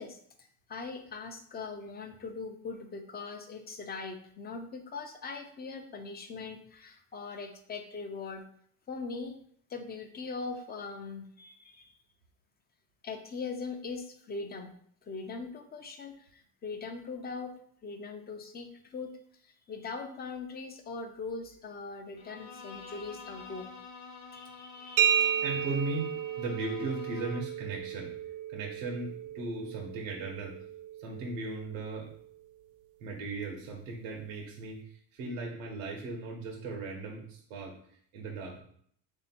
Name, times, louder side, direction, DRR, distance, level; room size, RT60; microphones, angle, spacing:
voice 1, 0.0-8.4 8.9-9.4 9.7-11.9 13.0-14.8 15.0-17.6 17.8-19.2 19.4-23.7 24.3-25.3, left 4 dB, 25° left, 6 dB, 0.6 m, -41 dB
Bowed string instrument, 22.2-27.6, left 4 dB, 55° left, 1.0 m, -48 dB
sound 1, 25.0-32.5, right 9 dB, 55° right, 0.5 m, -33 dB
voice 2, 25.4-26.1 26.4-28.1 28.5-30.6 31.0-32.1 33.0-37.8 38.1-38.6, right 3 dB, 85° right, 0 dB, 1.0 m, -37 dB
3.3 x 2.8 x 4.2 m, 0.62 s
supercardioid pair, 100°, 39 cm